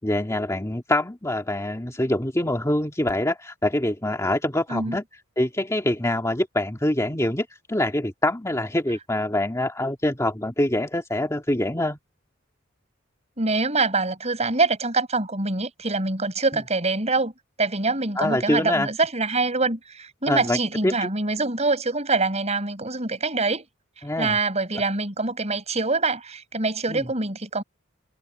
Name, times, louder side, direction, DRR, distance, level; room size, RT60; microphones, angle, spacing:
voice 1, 0.0-5.0 5.4-12.0 18.2-18.9 20.3-21.1 24.0-24.4 26.9-27.0, left 1 dB, 15° left, 1.9 m, -25 dB
voice 2, 13.4-17.3 17.6-23.7 24.2-27.6, right 3 dB, 35° right, 6.1 m, -25 dB
head